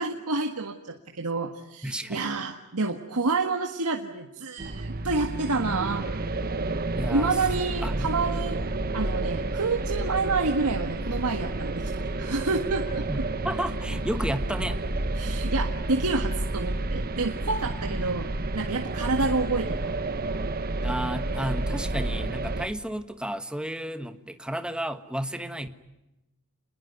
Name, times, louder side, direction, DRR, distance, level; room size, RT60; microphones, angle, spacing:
voice 1, 0.0-6.1 7.1-8.6 8.9-13.1 15.1-18.3 18.5-19.9, right 3 dB, 90° right, 4 dB, 1.7 m, -28 dB
voice 2, 1.8-2.2 7.0-7.4 7.8-8.1 13.1-14.8 17.8-18.0 20.8-25.7, right 1 dB, 5° right, 9 dB, 1.4 m, -32 dB
sound 1, 4.6-22.7, right 2 dB, 45° right, 1.3 m, -30 dB
27.5 x 21.0 x 9.4 m, 0.95 s
head